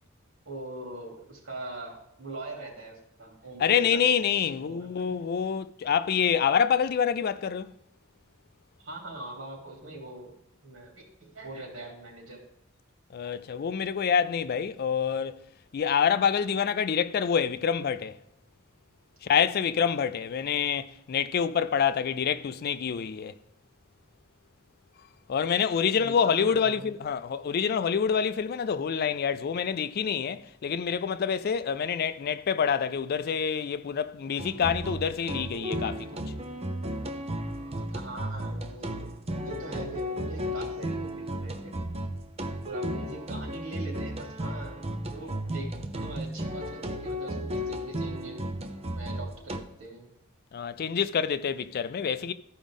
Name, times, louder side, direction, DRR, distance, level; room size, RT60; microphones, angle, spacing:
voice 1, 0.4-4.0 4.6-5.3 8.8-10.3 10.6-12.4 25.9-26.9 37.8-41.7 42.6-44.8 45.1-48.5 48.9-50.1, right 2 dB, 70° right, 2.9 m, -42 dB
voice 2, 3.6-7.7 13.1-15.4 15.7-18.2 19.2-23.3 25.3-36.2 50.5-52.3, left 7 dB, 50° left, 0.4 m, -27 dB
sound 1, 34.4-49.6, equal, 30° right, 0.7 m, -34 dB
14.0 x 5.0 x 3.6 m
head